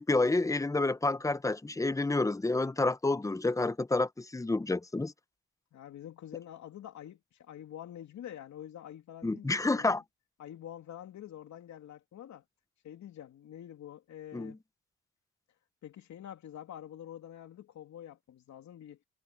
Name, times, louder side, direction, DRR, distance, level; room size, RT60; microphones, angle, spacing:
voice 1, 0.0-5.1 9.2-10.0 14.3-14.6, left 2 dB, 10° left, 0.8 m, -29 dB
voice 2, 5.7-10.0 10.4-12.4 12.8-14.6 15.8-19.0, left 11 dB, 65° left, 2.9 m, -47 dB
cardioid pair, 90°, 30 cm